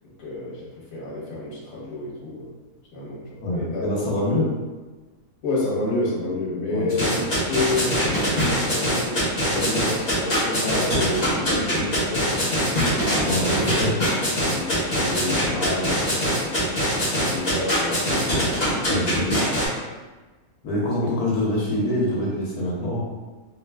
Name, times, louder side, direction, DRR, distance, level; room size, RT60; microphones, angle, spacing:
voice 1, 0.2-2.5 2.9-3.2 3.5-3.8 4.1-4.2 5.4-7.1 7.5-13.6 14.5-16.5 17.3-18.2 18.7-19.1, left 2 dB, 65° left, -5 dB, 1.3 m, -29 dB
voice 2, 3.4-4.5 6.7-6.9 13.3-13.5 13.8-14.0 18.8-19.4 20.6-23.0, left 1 dB, 85° left, -4 dB, 1.2 m, -25 dB
sound 1, 6.9-19.7, equal, 35° left, 0.9 m, -23 dB
3.1 x 3.0 x 2.2 m, 1.2 s
omnidirectional pair, 1.6 m